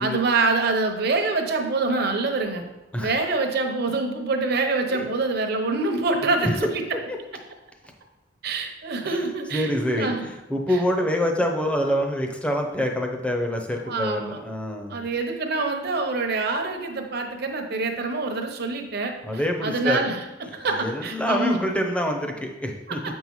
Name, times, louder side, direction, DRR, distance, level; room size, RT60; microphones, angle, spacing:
voice 1, 0.0-2.6 3.0-6.8 8.4-10.3 10.7-10.8 13.9-14.4 14.9-20.2 20.5-21.6 22.9-23.0, right 3 dB, 60° right, 4 dB, 0.8 m, -25 dB
voice 2, 9.5-15.1 19.3-20.1 20.7-23.0, equal, 5° left, 2 dB, 0.7 m, -26 dB
7.5 x 5.5 x 3.1 m, 1.0 s
head